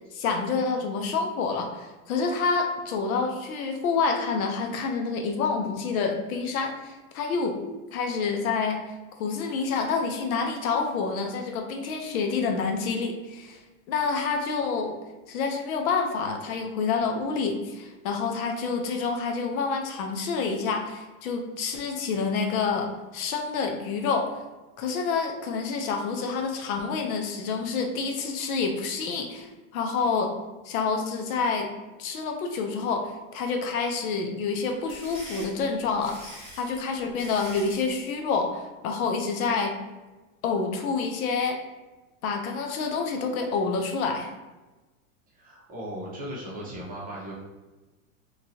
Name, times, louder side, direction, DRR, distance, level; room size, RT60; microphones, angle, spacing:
voice 1, 0.1-7.6 7.9-8.8 9.2-13.6 13.9-15.0 15.3-24.3 24.8-30.3 30.6-31.7 32.0-39.7 40.4-41.6 42.2-44.3, left 4 dB, 75° left, 4 dB, 0.7 m, -28 dB
sound 1, 34.6-37.9, equal, 10° left, 1.2 m, -44 dB
voice 2, 45.3-47.3, equal, 20° right, -5 dB, 0.8 m, -37 dB
3.0 x 2.7 x 2.6 m, 1.2 s
supercardioid pair, 135°, 43 cm